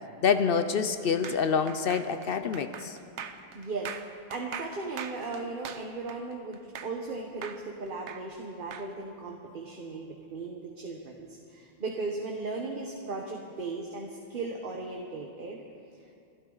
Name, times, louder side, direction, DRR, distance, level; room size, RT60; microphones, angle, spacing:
voice 1, 0.2-3.0, left 6 dB, 60° left, 10 dB, 0.8 m, -26 dB
sound 1, 1.2-7.1 7.4-8.9, right 7 dB, 90° right, 1.1 m, -41 dB
voice 2, 3.5-15.6, right 3 dB, 50° right, 0 dB, 1.3 m, -37 dB
26.0 x 12.0 x 4.0 m, 2.6 s
omnidirectional pair, 1.2 m